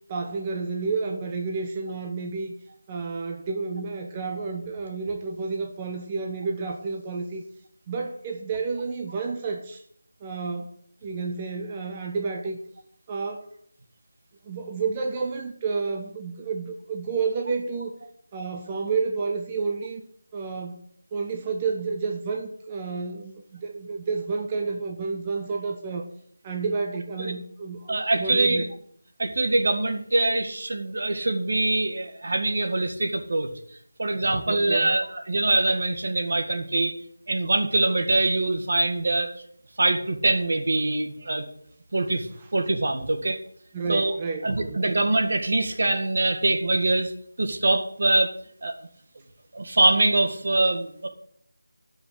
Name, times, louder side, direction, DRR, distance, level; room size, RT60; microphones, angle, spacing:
voice 1, 0.1-2.5 2.9-7.4 7.9-9.8 10.2-10.7 11.0-12.6 13.1-13.5 14.4-17.9 18.3-20.0 20.3-20.9 21.1-26.1 26.4-28.7 34.4-34.9 43.7-44.8, right 4 dB, 20° right, 3 dB, 0.9 m, -30 dB
voice 2, 27.9-28.7 29.2-33.5 34.0-36.9 37.3-39.3 39.8-41.5 41.9-43.4 43.9-44.1 44.4-47.1 47.4-48.3 48.6-48.7 49.5-51.1, right 2 dB, 55° right, 6 dB, 1.9 m, -23 dB
12.0 x 5.8 x 8.8 m, 0.65 s
figure-of-eight pair, 165°, 0 cm